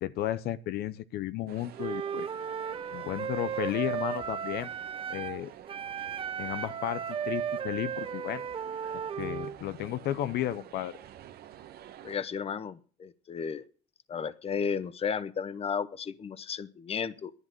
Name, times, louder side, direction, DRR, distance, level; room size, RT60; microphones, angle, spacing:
voice 1, 0.0-2.3 2.9-4.7 5.1-5.5 6.4-8.4 9.2-11.0, left 13 dB, 75° left, 0.8 m, -33 dB
sound 1, 1.5-12.2, right 11 dB, 70° right, 1.2 m, -50 dB
Wind instrument woodwind instrument, 1.8-5.4 5.7-9.6, right 7 dB, 30° right, 0.9 m, -35 dB
voice 2, 12.0-13.6 14.1-17.3, left 6 dB, 35° left, 0.9 m, -33 dB
11.0 x 9.9 x 7.6 m
cardioid pair, 110°, 17 cm